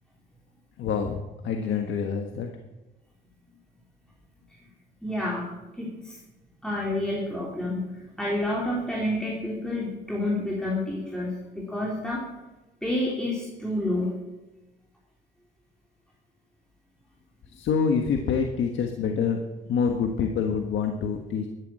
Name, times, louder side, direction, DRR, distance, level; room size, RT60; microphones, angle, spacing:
voice 1, 0.8-1.2 1.4-2.5 17.5-19.4 19.6-21.5, left 6 dB, 75° left, 4 dB, 1.4 m, -26 dB
voice 2, 5.0-5.5 5.7-6.2 6.6-7.8 8.2-12.2 12.8-14.1, left 1 dB, 5° left, -4 dB, 3.3 m, -29 dB
12.5 x 9.9 x 7.6 m, 1.1 s
cardioid pair, 90°, 20 cm